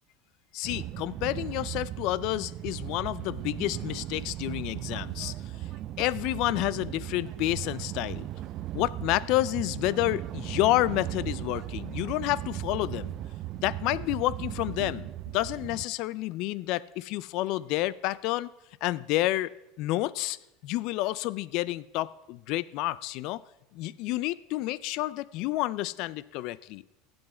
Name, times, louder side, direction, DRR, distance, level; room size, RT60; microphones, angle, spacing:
voice 1, 0.5-5.3 6.0-8.3 8.7-13.1 13.6-15.1 15.3-18.5 18.8-19.5 19.8-20.4 20.6-23.4 23.7-26.9, left 16 dB, 55° left, 19 dB, 0.4 m, -29 dB
sound 1, 0.6-15.9, right 13 dB, 40° right, 0.3 m, -37 dB
15.0 x 7.9 x 4.3 m, 0.95 s
supercardioid pair, 140°, 0 cm